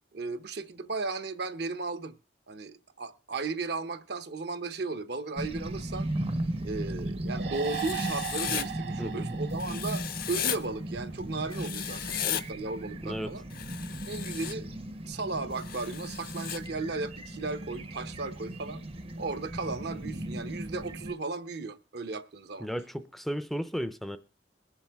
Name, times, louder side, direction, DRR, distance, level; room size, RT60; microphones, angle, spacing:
voice 1, 0.1-2.2 2.5-6.1 6.6-13.4 14.1-14.7 15.1-18.8 19.2-22.7, right 3 dB, 60° right, 0.8 m, -35 dB
sound 1, 5.4-21.1, right 1 dB, 30° right, 0.7 m, -37 dB
sound 2, 7.3-10.8, right 8 dB, 80° right, 1.4 m, -38 dB
Writing, 7.6-8.7 9.6-10.6 11.5-12.4 13.5-14.5 15.6-16.6, left 10 dB, 55° left, 0.7 m, -35 dB
voice 2, 22.6-24.2, equal, ahead, 0.5 m, -34 dB
22.0 x 7.4 x 3.5 m
head